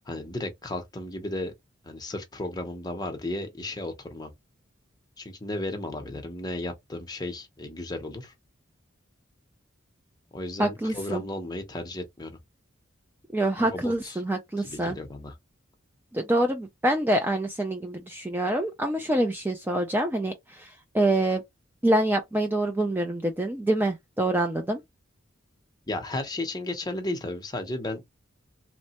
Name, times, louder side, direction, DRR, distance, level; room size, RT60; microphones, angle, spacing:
voice 1, 0.1-1.5 1.8-4.3 5.2-8.3 10.3-12.4 13.6-14.2 14.6-15.3 25.9-28.1, left 1 dB, 20° left, 0.7 m, -34 dB
voice 2, 10.6-11.2 13.3-15.0 16.1-20.7 20.9-21.4 21.8-24.8, right 1 dB, 10° right, 0.3 m, -26 dB
3.2 x 2.1 x 2.8 m
head